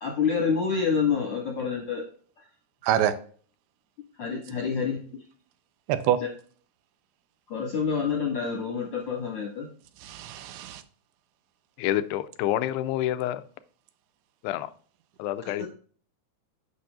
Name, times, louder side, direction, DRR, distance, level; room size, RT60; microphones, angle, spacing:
voice 1, 0.0-2.0 4.2-5.2 7.5-9.7 15.5-15.6, left 6 dB, 60° left, 1.4 m, -27 dB
voice 2, 2.8-3.2 5.9-6.2 10.0-10.8, right 11 dB, 85° right, 2.5 m, -25 dB
voice 3, 11.8-13.4 14.4-14.7 15.2-15.7, left 13 dB, 85° left, 2.6 m, -28 dB
8.3 x 6.0 x 2.4 m
omnidirectional pair, 4.7 m